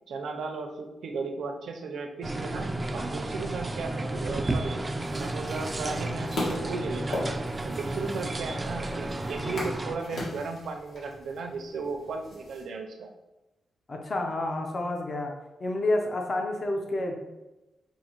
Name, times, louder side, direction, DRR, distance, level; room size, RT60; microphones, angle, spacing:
voice 1, 0.1-4.9 5.2-7.3 7.6-13.1, right 4 dB, 75° right, 5 dB, 0.5 m, -35 dB
sound 1, 2.2-10.0, right 2 dB, 20° right, 0.3 m, -32 dB
sound 2, 5.0-12.6, left 1 dB, 70° left, 1.5 m, -39 dB
voice 2, 13.9-15.3 15.6-17.1, left 2 dB, 40° left, 2 dB, 0.6 m, -29 dB
5.4 x 2.6 x 2.9 m, 1.0 s
wide cardioid pair, 120°, 0 cm